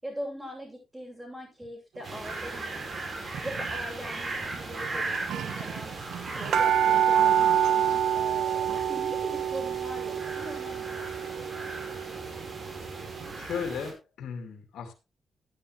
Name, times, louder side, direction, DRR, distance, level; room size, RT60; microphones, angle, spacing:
voice 1, 0.0-2.9 3.4-5.9 6.3-11.6, equal, 15° right, -5 dB, 7.7 m, -41 dB
sound 1, 2.0-13.9, right 3 dB, 40° right, 4.6 m, -38 dB
sound 2, 3.3-3.7 4.5-4.6 4.8-4.9 5.1-12.8 13.2-13.3, right 9 dB, 80° right, 1.3 m, -27 dB
voice 2, 13.4-14.9, left 6 dB, 80° left, 6 dB, 2.3 m, -36 dB
13.5 x 9.7 x 3.3 m, 0.27 s
cardioid pair, 65°, 0 cm